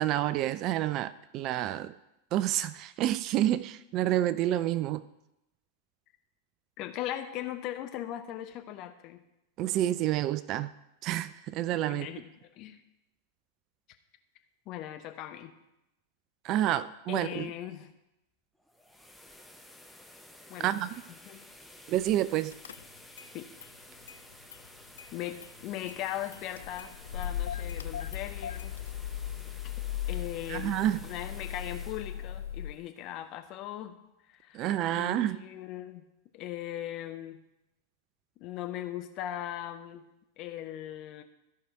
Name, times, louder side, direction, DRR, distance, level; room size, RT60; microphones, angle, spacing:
voice 1, 0.0-1.9 2.3-5.0 9.6-10.7 11.0-12.1 16.4-17.5 20.6-20.9 21.9-22.5 30.5-31.0 34.5-35.4, right 13 dB, 40° right, 0.3 m, -29 dB
voice 2, 6.8-9.2 11.9-12.8 14.7-15.5 17.1-17.9 20.5-20.8 21.2-21.4 23.3-23.5 25.1-28.7 30.1-30.7 31.0-34.0 34.3-36.0 36.3-37.4 38.4-40.0 40.4-41.2, left 12 dB, 40° left, 0.8 m, -39 dB
sound 1, 18.5-33.5, left 1 dB, ahead, 0.8 m, -53 dB
Car / Engine starting, 22.0-22.2 22.5-23.3 23.6-24.7 25.0-32.7, left 10 dB, 65° left, 0.3 m, -38 dB
13.5 x 4.8 x 4.8 m
figure-of-eight pair, 90°, 0 cm